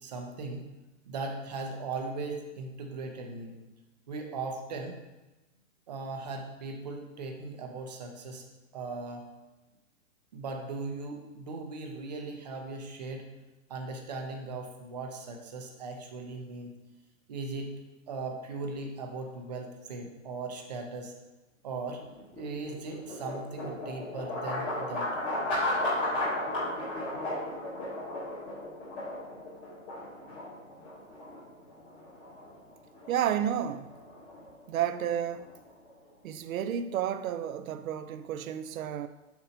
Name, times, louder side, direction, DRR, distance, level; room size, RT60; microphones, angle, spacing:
voice 1, 0.0-0.6 1.1-3.5 4.1-4.9 5.9-8.4 8.7-9.3 10.3-13.2 13.7-16.7 17.3-17.7 18.1-21.1 21.6-22.0 22.3-25.1, right 3 dB, 30° right, 0.7 m, -38 dB
sound 1, 22.0-36.1, left 1 dB, 10° left, 1.0 m, -35 dB
voice 2, 33.1-33.9 34.7-35.5 36.2-39.1, right 9 dB, 85° right, 0.5 m, -31 dB
7.0 x 2.7 x 5.3 m
hypercardioid pair, 175°, 40 cm